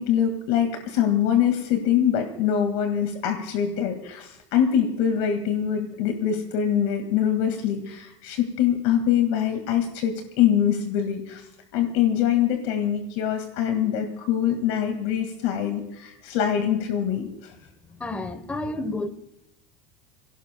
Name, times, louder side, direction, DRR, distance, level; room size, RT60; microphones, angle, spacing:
voice 1, 0.0-11.5 11.7-17.5, left 9 dB, 60° left, 6 dB, 2.0 m, -24 dB
voice 2, 17.9-19.1, left 2 dB, 10° left, 12 dB, 1.0 m, -30 dB
26.0 x 17.5 x 2.3 m, 0.88 s
cardioid pair, 175°, 14 cm